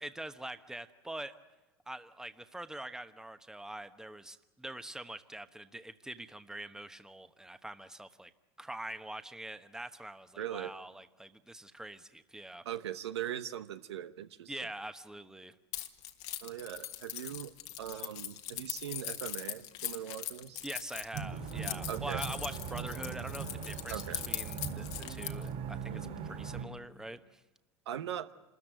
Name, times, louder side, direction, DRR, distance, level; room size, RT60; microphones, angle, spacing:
voice 1, 0.0-1.4 1.9-8.3 8.6-12.6 14.5-15.5 19.8-20.0 20.6-27.4, right 1 dB, 5° right, 10 dB, 1.1 m, -44 dB
voice 2, 10.4-10.7 12.6-14.7 16.4-17.5 17.8-20.6 21.9-22.2 23.9-24.2 27.9-28.3, right 10 dB, 80° right, 11 dB, 1.0 m, -40 dB
Keys jangling, 15.7-25.5, left 13 dB, 55° left, 1.6 m, -41 dB
sound 1, 21.1-26.6, right 6 dB, 55° right, 4.4 m, -40 dB
27.5 x 14.0 x 9.2 m, 1.1 s
hypercardioid pair, 85°, 14 cm